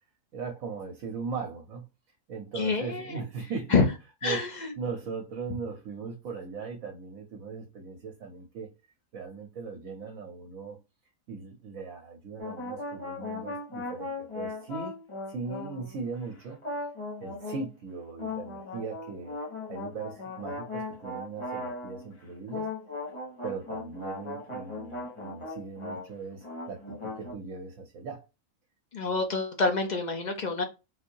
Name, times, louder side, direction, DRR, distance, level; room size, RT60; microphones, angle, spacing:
voice 1, 0.3-1.9 2.3-3.9 4.2-4.5 4.8-8.7 9.1-10.8 11.3-14.9 15.3-16.6 17.2-19.4 19.7-22.7 23.4-28.3, right 5 dB, 75° right, 1.2 m, -38 dB
voice 2, 2.6-3.2 3.7-3.8 4.2-4.7 28.9-30.6, left 4 dB, 45° left, 0.6 m, -27 dB
sound 1, 12.4-16.1 16.6-17.7 18.2-22.1 22.5-26.1 26.3-27.3, left 2 dB, 25° left, 1.1 m, -38 dB
4.0 x 2.6 x 2.7 m
omnidirectional pair, 1.4 m